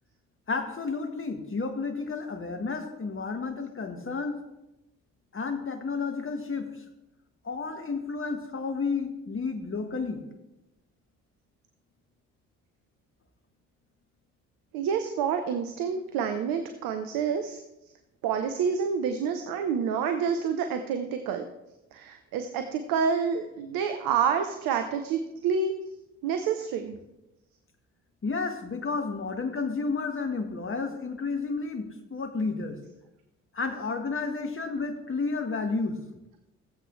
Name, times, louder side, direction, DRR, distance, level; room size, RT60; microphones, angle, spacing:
voice 1, 0.5-4.4 5.3-6.8 7.4-10.2 28.2-32.8 33.5-36.0, left 4 dB, 30° left, 6 dB, 1.7 m, -31 dB
voice 2, 14.7-17.6 18.2-21.4 21.9-25.7 26.2-27.0, right 6 dB, 60° right, 7 dB, 0.9 m, -28 dB
16.0 x 8.0 x 3.2 m, 0.94 s
figure-of-eight pair, 45°, 39 cm